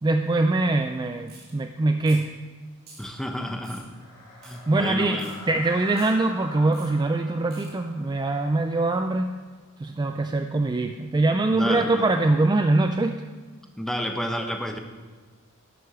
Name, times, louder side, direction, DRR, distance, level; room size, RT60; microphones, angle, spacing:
voice 1, 0.0-2.4 4.7-9.3 9.8-13.2, right 2 dB, 20° right, 6 dB, 0.4 m, -23 dB
sound 1, 1.3-1.5 2.0-2.3 2.8-3.1 3.6-3.9 4.4-4.6 5.2-5.4 5.9-6.1 6.7-6.9 7.5-7.7, right 4 dB, 45° right, 3.2 m, -47 dB
voice 2, 3.0-3.9 4.4-5.4 11.5-12.0 13.8-14.8, equal, ahead, 4 dB, 0.8 m, -30 dB
sound 2, 3.7-9.8, left 1 dB, 65° left, 3.5 m, -45 dB
11.0 x 6.2 x 6.1 m, 1.4 s
head